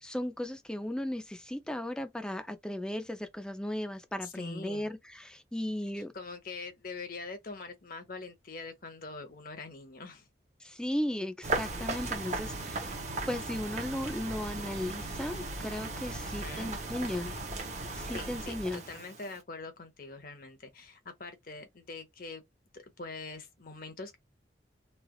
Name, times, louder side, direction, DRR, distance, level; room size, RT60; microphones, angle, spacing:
voice 1, 0.0-6.1 10.6-12.9 13.3-17.3 17.9-18.8, left 1 dB, 5° left, 0.4 m, -36 dB
voice 2, 4.2-4.9 6.1-10.3 16.2-16.7 18.1-22.4 22.7-24.2, left 3 dB, 55° left, 0.9 m, -44 dB
sound 1, 11.4-19.4, right 2 dB, 40° right, 0.9 m, -37 dB
3.2 x 2.3 x 2.3 m
head